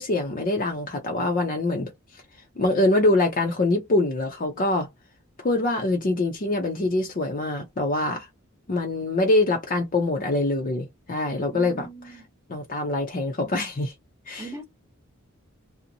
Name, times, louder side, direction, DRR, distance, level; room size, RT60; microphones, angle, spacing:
voice 1, 0.0-2.2 2.6-4.9 5.4-8.3 8.7-11.9 12.5-13.9 14.3-14.5, left 2 dB, 40° left, 0.5 m, -24 dB
voice 2, 11.5-12.3 14.4-14.6, right 3 dB, 10° right, 0.8 m, -39 dB
2.6 x 2.0 x 2.7 m
head